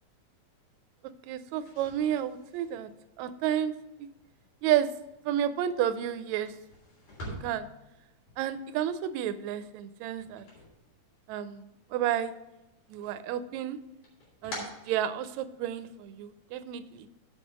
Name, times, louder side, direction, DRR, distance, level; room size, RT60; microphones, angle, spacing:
voice 1, 1.3-2.9 3.2-3.7 4.0-4.1 4.6-4.9 5.3-6.5 7.4-7.7 8.4-10.5 11.3-12.3 12.9-13.8 14.4-17.1, right 10 dB, 80° right, 12 dB, 1.8 m, -31 dB
sound 1, 1.6-11.5 11.8-12.7 13.1-15.7, equal, 75° left, 4.9 m, -48 dB
8.0 x 5.6 x 6.0 m, 0.96 s
omnidirectional pair, 3.4 m